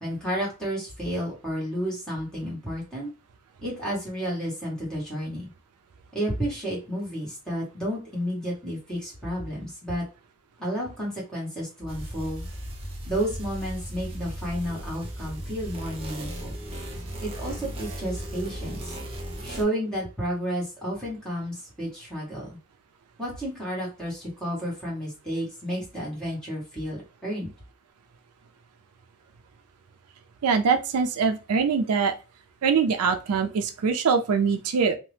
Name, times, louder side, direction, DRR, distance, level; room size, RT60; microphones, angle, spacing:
voice 1, 0.0-3.1 3.6-5.5 6.1-10.0 10.6-12.5 13.1-16.5 17.2-19.0 19.4-22.6 23.2-27.5, equal, 5° left, -5 dB, 1.3 m, -31 dB
sound 1, 11.9-19.6, right 1 dB, 25° right, 0.5 m, -36 dB
voice 2, 30.4-32.1 32.6-34.9, right 5 dB, 85° right, 7 dB, 0.4 m, -23 dB
2.8 x 2.0 x 3.2 m, 0.30 s
head